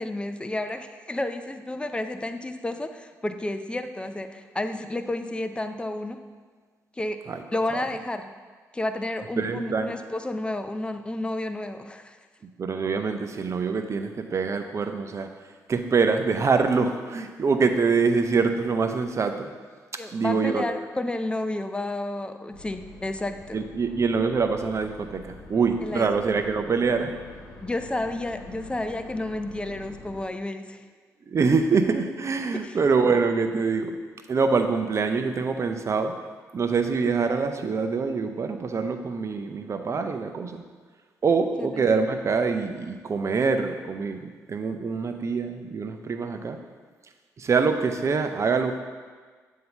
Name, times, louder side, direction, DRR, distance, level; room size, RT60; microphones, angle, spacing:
voice 1, 0.0-6.2 7.0-7.2 7.5-8.3 8.7-12.2 20.0-23.6 25.8-26.1 27.6-30.8 32.5-32.8 41.6-41.8, left 1 dB, 15° left, 8 dB, 0.5 m, -31 dB
voice 2, 9.4-9.9 12.6-15.3 15.7-19.5 20.1-20.7 23.5-27.1 31.3-33.9 34.3-36.1 36.5-40.6 41.2-46.6 47.4-48.8, right 5 dB, 45° right, 6 dB, 0.6 m, -25 dB
sound 1, 22.5-30.3, left 2 dB, 75° left, 0.8 m, -45 dB
7.6 x 2.8 x 5.7 m, 1.5 s
supercardioid pair, 55°, 7 cm